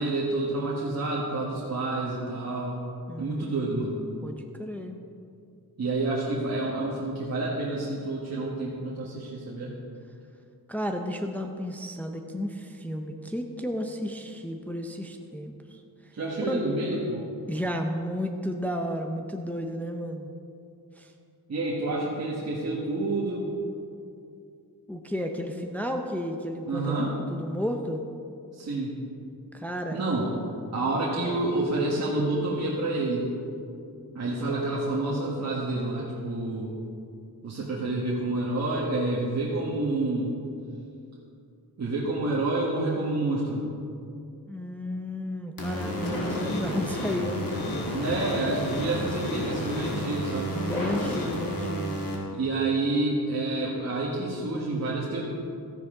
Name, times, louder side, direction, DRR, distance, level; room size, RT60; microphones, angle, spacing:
voice 1, 0.0-2.8 3.2-4.0 5.8-9.7 16.1-17.3 21.5-23.5 26.7-27.1 28.5-29.0 29.9-30.3 30.7-33.3 34.1-36.7 37.4-40.3 41.8-43.6 47.9-50.6 52.3-55.2, right 2 dB, 45° right, -6 dB, 1.5 m, -28 dB
voice 2, 3.1-3.8 4.2-5.0 10.7-16.1 16.5-16.6 17.5-20.3 21.0-21.1 24.9-27.0 27.3-28.0 29.5-30.0 44.5-47.8 50.5-52.1, equal, 5° left, 3 dB, 0.5 m, -33 dB
sound 1, 45.6-52.2, left 1 dB, 65° left, 2.3 m, -31 dB
14.0 x 10.5 x 3.8 m, 2.5 s
wide cardioid pair, 155°, 37 cm